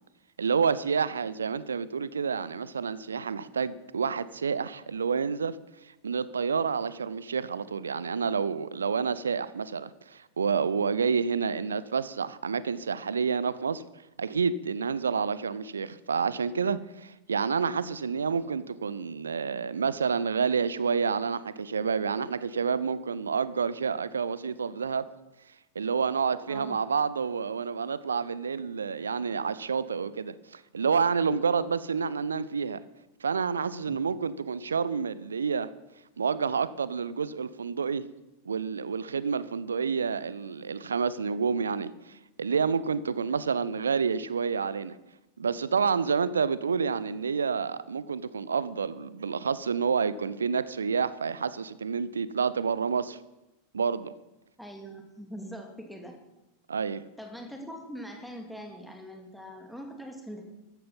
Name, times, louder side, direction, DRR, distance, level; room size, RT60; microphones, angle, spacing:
voice 1, 0.4-5.6 5.8-13.8 14.2-25.0 25.7-32.8 33.2-35.7 36.2-38.0 38.5-45.0 45.4-53.2 53.7-54.1 56.7-57.0, right 5 dB, 70° right, 17 dB, 0.7 m, -29 dB
voice 2, 26.5-26.8 33.9-34.0 54.6-56.2 57.2-60.4, equal, ahead, 2 dB, 2.5 m, -42 dB
14.0 x 14.0 x 5.7 m, 0.96 s
figure-of-eight pair, 90°, 0 cm